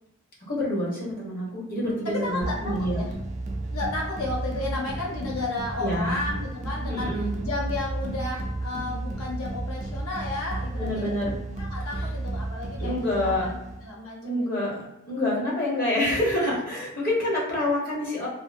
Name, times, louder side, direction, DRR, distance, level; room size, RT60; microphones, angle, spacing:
voice 1, 0.5-3.0 5.8-6.2 6.9-7.3 10.8-11.3 12.8-13.6 14.2-18.3, left 1 dB, 40° left, -5 dB, 1.0 m, -27 dB
voice 2, 1.9-3.1 3.7-11.3 11.6-14.6 15.5-15.6, left 2 dB, 70° left, -2 dB, 0.6 m, -33 dB
sound 1, 2.4-13.9, right 2 dB, 35° right, 0.3 m, -33 dB
2.6 x 2.5 x 2.5 m, 0.93 s
head